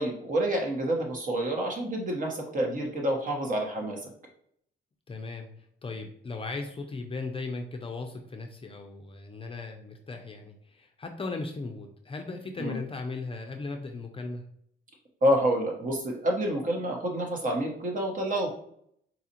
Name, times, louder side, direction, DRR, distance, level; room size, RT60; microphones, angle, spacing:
voice 1, 0.0-4.1 12.6-12.8 15.2-18.5, right 1 dB, 40° right, 1 dB, 1.0 m, -28 dB
voice 2, 5.1-5.5 5.8-14.4, left 3 dB, 30° left, 3 dB, 0.5 m, -37 dB
4.1 x 2.4 x 2.8 m, 0.68 s
cardioid pair, 90°, 20 cm